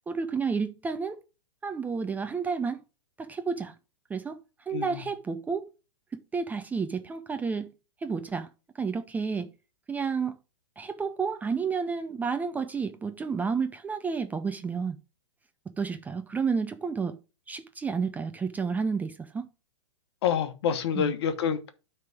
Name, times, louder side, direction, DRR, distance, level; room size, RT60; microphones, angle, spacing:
voice 1, 0.1-1.2 1.6-2.8 3.2-3.7 4.1-4.4 4.7-5.7 6.3-7.7 8.0-8.5 8.8-9.5 9.9-10.3 10.8-15.0 15.8-17.2 17.5-19.5 20.9-21.1, right 5 dB, 10° right, 0.5 m, -30 dB
voice 2, 4.7-5.0 20.2-21.7, left 8 dB, 55° left, 1.2 m, -27 dB
9.3 x 3.4 x 5.9 m
hypercardioid pair, 120°, 16 cm